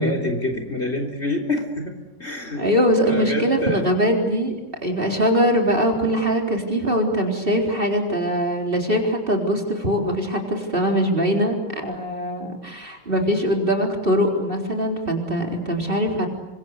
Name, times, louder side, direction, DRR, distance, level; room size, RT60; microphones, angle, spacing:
voice 1, 0.0-2.7 3.0-3.9, left 1 dB, 35° left, 5 dB, 4.0 m, -27 dB
voice 2, 2.5-16.3, equal, 25° right, 2 dB, 4.3 m, -22 dB
29.0 x 25.5 x 8.1 m, 0.98 s
omnidirectional pair, 2.0 m